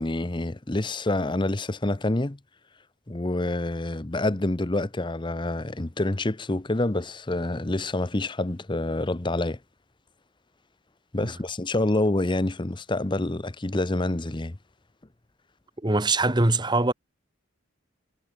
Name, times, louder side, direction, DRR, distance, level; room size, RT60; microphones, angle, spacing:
voice 1, 0.0-2.4 3.1-9.6 11.1-14.6, left 2 dB, 25° left, 0.8 m, -27 dB
voice 2, 15.8-16.9, right 2 dB, 20° right, 1.5 m, -22 dB
head